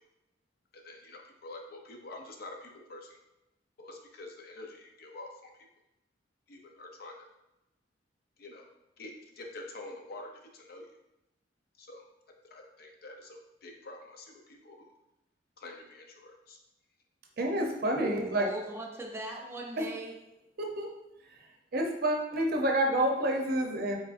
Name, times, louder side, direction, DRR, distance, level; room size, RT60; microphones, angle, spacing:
voice 1, 0.7-3.2 3.8-5.7 6.5-7.3 8.4-8.7 9.0-10.9 11.8-12.0 12.5-14.9 15.6-16.6, left 2 dB, 55° left, 2 dB, 0.6 m, -47 dB
voice 2, 17.4-18.5 19.8-19.9 20.6-20.9 21.7-24.0, right 1 dB, 55° right, 1 dB, 0.6 m, -28 dB
voice 3, 17.9-20.1, right 1 dB, 15° right, 0 dB, 0.5 m, -38 dB
4.0 x 3.6 x 2.5 m, 0.91 s
head